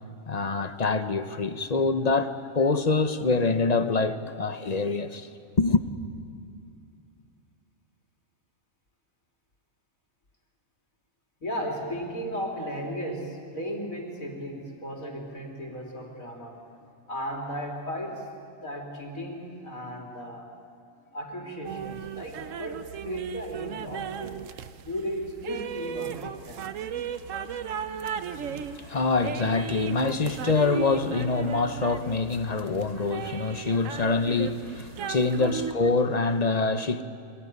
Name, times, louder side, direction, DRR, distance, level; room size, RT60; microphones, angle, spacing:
voice 1, 0.3-5.3 5.6-5.8 28.4-37.0, left 3 dB, 35° left, 0.9 m, -25 dB
voice 2, 11.4-16.7 17.1-18.3 18.6-20.5 21.1-24.4 24.8-26.7 27.0-27.1, equal, 85° left, 3.6 m, -35 dB
sound 1, 21.6-35.7, right 7 dB, 70° right, 1.2 m, -36 dB
25.0 x 17.5 x 9.6 m
omnidirectional pair, 1.4 m